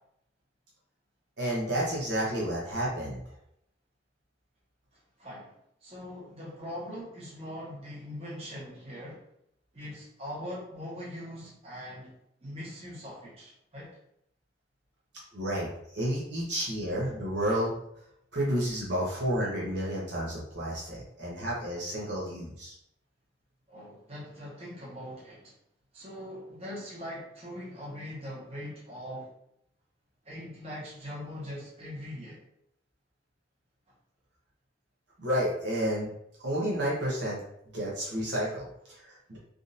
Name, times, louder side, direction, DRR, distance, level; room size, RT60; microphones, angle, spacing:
voice 1, 1.4-3.2 15.3-17.8 18.3-22.8 35.2-36.1 36.4-37.4 37.7-39.4, equal, 65° right, -5 dB, 0.8 m, -31 dB
voice 2, 4.9-9.2 9.7-12.1 12.4-13.9 23.7-25.6 25.9-29.3 30.2-32.4, equal, 30° right, -7 dB, 1.1 m, -41 dB
3.6 x 2.5 x 2.6 m, 0.75 s
head